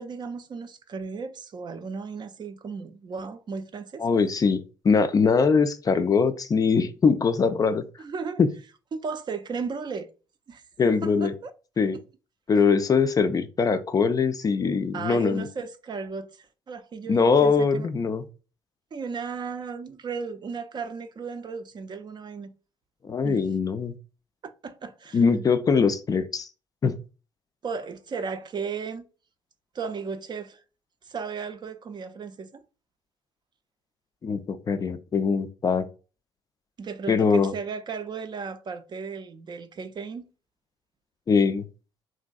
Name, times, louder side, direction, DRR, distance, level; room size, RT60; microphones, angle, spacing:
voice 1, 0.0-4.0 8.0-8.4 8.9-10.1 10.5-10.6 11.0-11.5 14.9-17.9 18.9-22.5 23.2-23.5 24.4-25.5 27.6-29.1 29.7-30.6 31.1-32.5 36.8-40.3, right 5 dB, 40° right, 0.4 m, -35 dB
voice 2, 4.0-7.8 8.4-8.5 10.8-11.3 11.8-12.0 12.5-15.5 17.1-18.2 23.0-24.0 25.1-26.5 26.8-27.0 34.2-35.9 37.1-37.5 41.3-41.7, left 5 dB, 30° left, 0.3 m, -22 dB
3.1 x 2.5 x 2.3 m
hypercardioid pair, 55°, 12 cm